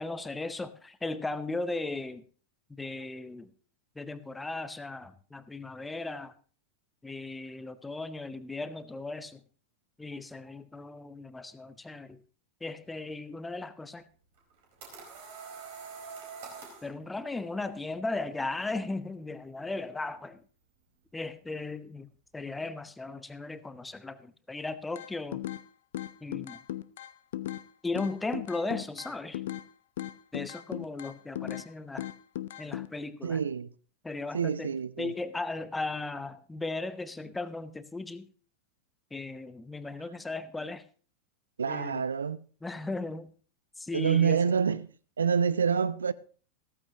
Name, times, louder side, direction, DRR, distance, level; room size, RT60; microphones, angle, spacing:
voice 1, 0.0-2.2 2.7-3.5 4.0-6.3 7.0-9.4 10.0-12.2 12.6-14.0 16.8-20.4 21.1-22.1 22.3-25.4 26.2-26.6 27.8-29.4 30.3-32.1 32.6-33.4 34.0-34.7 35.0-38.3 39.1-40.8 41.7-42.0 42.6-43.3 43.8-44.5, left 3 dB, 10° left, 0.8 m, -36 dB
sound 1, 14.4-16.9, right 5 dB, 50° right, 4.3 m, -44 dB
sound 2, 25.0-25.6 25.9-27.7 28.0-29.7 30.0-31.7 32.0-32.9, left 13 dB, 55° left, 0.6 m, -37 dB
voice 2, 33.2-33.7 34.3-35.1 41.6-42.4 43.9-44.8 45.2-46.1, right 7 dB, 70° right, 0.4 m, -27 dB
15.0 x 14.0 x 2.9 m
figure-of-eight pair, 90°, 0 cm